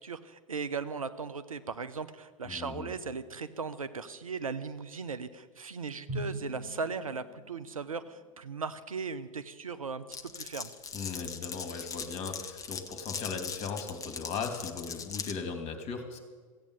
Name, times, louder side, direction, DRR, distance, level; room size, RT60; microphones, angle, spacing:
voice 1, 0.0-10.7, right 5 dB, 85° right, 12 dB, 0.8 m, -38 dB
voice 2, 2.4-2.9 10.9-16.2, left 5 dB, 35° left, 6 dB, 2.5 m, -38 dB
Drum, 6.1-7.8, right 1 dB, 60° right, 3.5 m, -40 dB
Glass, 10.1-15.4, left 6 dB, 20° left, 1.1 m, -40 dB
15.5 x 8.7 x 8.2 m, 1.4 s
figure-of-eight pair, 95°, 17 cm